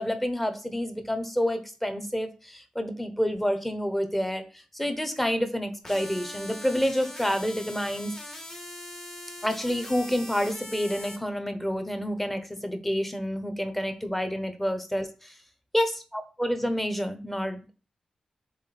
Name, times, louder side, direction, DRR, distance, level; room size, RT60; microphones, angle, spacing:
voice 1, 0.0-8.1 9.4-15.3 15.7-17.7, equal, 10° left, 8 dB, 1.0 m, -29 dB
sound 1, 5.8-11.2, left 1 dB, 35° left, 2.0 m, -41 dB
7.3 x 3.8 x 4.1 m, 0.34 s
wide cardioid pair, 125°, 2 cm